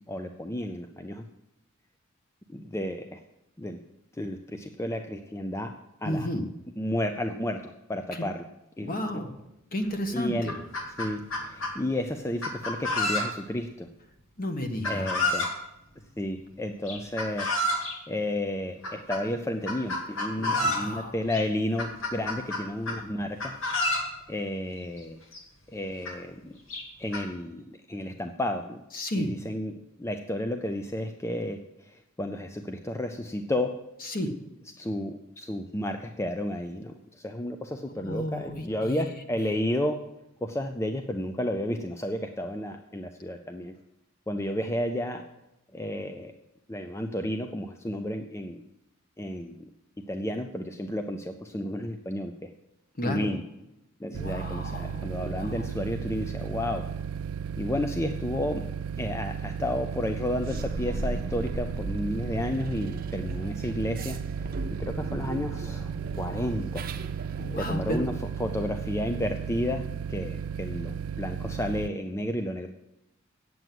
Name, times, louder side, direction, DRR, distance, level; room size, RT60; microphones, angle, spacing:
voice 1, 0.1-1.2 2.5-3.2 3.6-3.8 4.2-5.7 6.0-6.3 6.8-8.5 8.8-8.9 10.1-10.5 11.0-13.9 14.8-15.5 16.2-17.5 18.1-23.6 24.3-25.2 25.7-26.6 27.0-28.8 29.1-29.7 30.0-33.7 34.8-40.0 40.4-43.7 44.3-45.2 45.7-46.3 46.7-48.6 49.2-49.7 50.1-52.5 53.0-53.4 54.0-56.8 57.6-58.6 59.0-64.2 64.8-66.9 67.5-68.1 68.4-72.7, left 1 dB, 15° left, 6 dB, 0.5 m, -32 dB
voice 2, 6.0-6.5 8.1-8.3 8.8-9.4 9.7-10.6 14.4-15.1 20.4-21.2 28.9-29.3 34.0-34.3 37.9-39.2 53.0-53.3 54.1-55.7 67.4-68.1, left 1 dB, 45° left, 5 dB, 1.4 m, -32 dB
Chicken rooster, 9.8-9.9 10.3-11.7 12.4-13.5 14.8-15.6 16.9-17.9 18.8-19.2 19.7-20.9 21.3-21.4 21.8-23.0 23.4-24.1 25.0-25.1 25.3-25.4 26.0-26.1 26.7-27.2, left 2 dB, 70° left, 2.2 m, -29 dB
sound 1, 54.1-71.9, right 7 dB, 80° right, 0.3 m, -35 dB
sound 2, 60.4-67.6, right 2 dB, 45° right, 0.8 m, -38 dB
9.1 x 7.8 x 7.6 m, 0.90 s
head